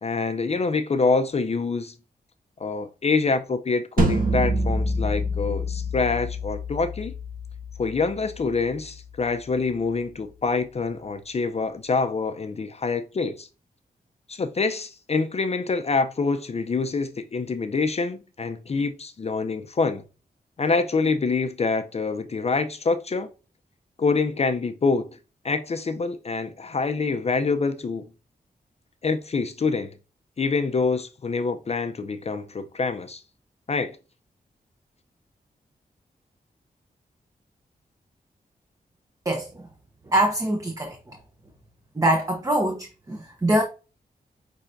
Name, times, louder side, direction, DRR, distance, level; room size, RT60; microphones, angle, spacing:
voice 1, 0.0-1.9 2.6-7.1 7.8-13.5 14.3-20.0 20.6-23.3 24.0-25.1 25.4-28.1 29.0-29.9 30.4-33.2 33.7-34.0, left 4 dB, 40° left, 0.4 m, -26 dB
sound 1, 4.0-9.1, equal, 60° right, 1.0 m, -27 dB
voice 2, 39.3-39.7 40.1-41.2 41.9-43.6, right 1 dB, 20° right, 0.7 m, -24 dB
5.7 x 3.3 x 2.5 m
wide cardioid pair, 95°, 16 cm